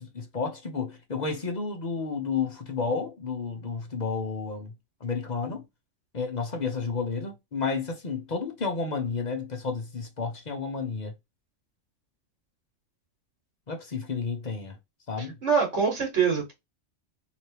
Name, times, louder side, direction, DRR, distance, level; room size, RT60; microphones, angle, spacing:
voice 1, 0.0-4.7 5.0-5.6 6.1-11.1 13.7-14.8 15.1-15.3, left 5 dB, 45° left, 0.8 m, -31 dB
voice 2, 15.2-16.5, right 6 dB, 65° right, 1.6 m, -25 dB
3.2 x 3.0 x 2.8 m
omnidirectional pair, 1.2 m